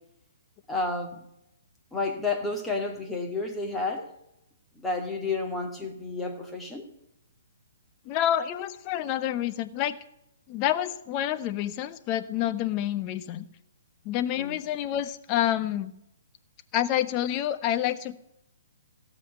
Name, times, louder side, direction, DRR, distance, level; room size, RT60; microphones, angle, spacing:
voice 1, 0.7-1.2 1.9-4.1 4.8-6.8 14.4-14.6, left 3 dB, 5° left, 2 dB, 2.5 m, -31 dB
voice 2, 8.1-10.0 10.5-13.4 14.0-15.9 16.7-18.2, left 11 dB, 30° left, 11 dB, 1.0 m, -28 dB
17.0 x 7.7 x 9.7 m, 0.80 s
figure-of-eight pair, 125°, 0 cm